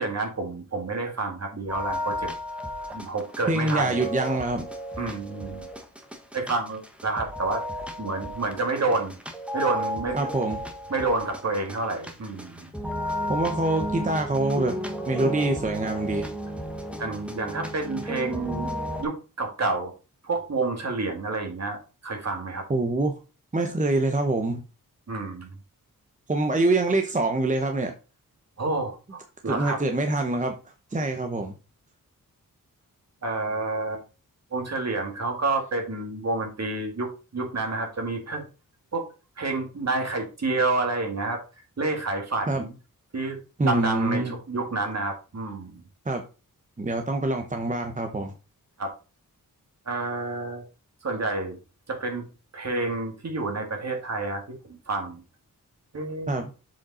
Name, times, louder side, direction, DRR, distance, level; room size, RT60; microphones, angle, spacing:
voice 1, 0.0-2.3 2.9-4.1 5.0-5.7 6.3-7.6 8.0-9.2 9.5-10.3 10.9-12.7 17.0-18.7 19.0-19.9 20.2-22.6 25.1-25.5 28.6-29.8 33.2-34.0 34.5-38.4 38.9-39.1 39.4-41.4 41.8-42.7 43.1-45.8 48.8-48.9 49.9-50.6 51.0-51.6 51.9-52.2 52.5-54.6 54.9-55.2 55.9-56.3, right 3 dB, 50° right, 3 dB, 2.3 m, -29 dB
sound 1, 1.7-19.0, equal, 5° right, 1.1 m, -33 dB
voice 2, 3.5-4.6 10.1-10.6 13.3-14.8 15.1-16.3 22.7-23.1 23.5-24.6 26.3-27.9 29.5-30.6 30.9-31.5 42.5-42.7 43.6-44.3 46.1-46.2 46.8-48.3 56.3-56.5, right 2 dB, 20° right, 5 dB, 0.8 m, -25 dB
7.3 x 5.2 x 4.2 m, 0.32 s
wide cardioid pair, 145°, 34 cm